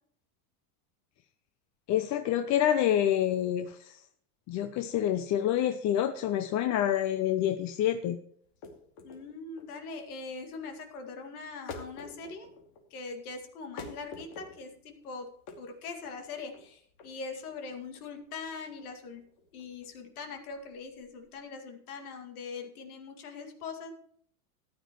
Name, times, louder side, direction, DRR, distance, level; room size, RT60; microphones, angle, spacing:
voice 1, 1.9-4.0 4.5-8.2, left 11 dB, 40° left, 8 dB, 0.8 m, -27 dB
sound 1, 8.4-21.4, left 4 dB, 55° left, 2.6 m, -49 dB
voice 2, 9.0-12.5 12.9-15.3 15.6-19.2 19.5-23.9, left 4 dB, 85° left, 5 dB, 2.3 m, -42 dB
14.0 x 10.5 x 3.1 m, 0.62 s
supercardioid pair, 125°, 43 cm